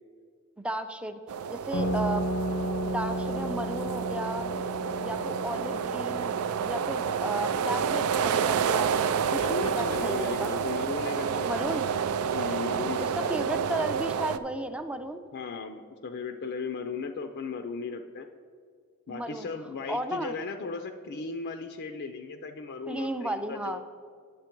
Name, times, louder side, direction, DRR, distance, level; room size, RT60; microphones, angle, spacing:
voice 1, 0.6-1.2 1.5-2.3 2.8-4.5 5.0-6.3 6.7-9.2 9.7-10.5 11.5-11.8 13.0-15.2 19.1-19.5 19.9-20.4 22.9-23.8, right 1 dB, 5° right, 9 dB, 0.4 m, -34 dB
sound 1, 1.3-14.4, right 7 dB, 80° right, 0.4 m, -29 dB
sound 2, 1.7-10.9, right 1 dB, 85° left, 0.7 m, -35 dB
voice 2, 9.3-11.8 12.3-13.4 15.3-18.3 19.1-23.8, left 4 dB, 50° left, 6 dB, 0.4 m, -36 dB
9.4 x 7.1 x 4.4 m, 2.3 s
head